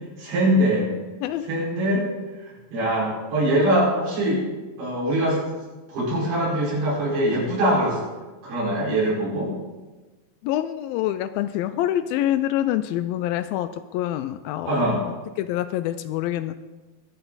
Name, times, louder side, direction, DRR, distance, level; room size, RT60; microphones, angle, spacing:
voice 1, 0.2-0.9 1.5-2.0 2.7-4.4 4.8-5.4 5.9-8.0 8.4-9.5 14.7-15.0, right 1 dB, 90° right, -7 dB, 7.0 m, -22 dB
voice 2, 10.4-14.9 15.4-16.5, left 12 dB, 80° left, 12 dB, 2.2 m, -26 dB
22.5 x 8.1 x 4.0 m, 1.2 s
omnidirectional pair, 4.4 m